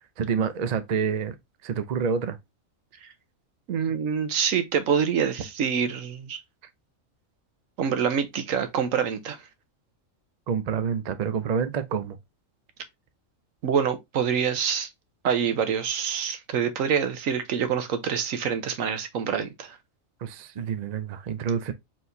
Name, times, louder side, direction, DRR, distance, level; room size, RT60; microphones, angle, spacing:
voice 1, 0.2-1.3 1.6-2.4 10.5-12.2 20.2-21.7, right 6 dB, 55° right, 0.4 m, -28 dB
voice 2, 3.7-6.4 7.8-9.4 13.6-14.9 15.2-19.8, right 7 dB, 80° right, 1.1 m, -26 dB
4.5 x 3.7 x 2.6 m
omnidirectional pair, 1.4 m